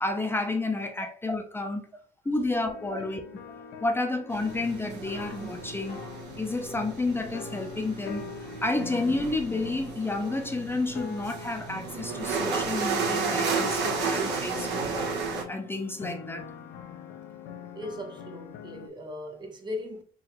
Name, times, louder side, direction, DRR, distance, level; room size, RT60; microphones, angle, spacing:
voice 1, 0.0-1.9 2.3-3.2 3.5-6.0 6.4-14.9 15.5-16.4, left 2 dB, 15° left, 0.5 m, -30 dB
sound 1, 2.6-18.9, left 7 dB, 80° left, 0.6 m, -44 dB
sound 2, 4.3-15.4, right 4 dB, 85° right, 1.2 m, -33 dB
voice 2, 17.7-20.0, left 1 dB, 25° right, 0.9 m, -38 dB
3.9 x 2.7 x 2.9 m
cardioid pair, 110°, 17 cm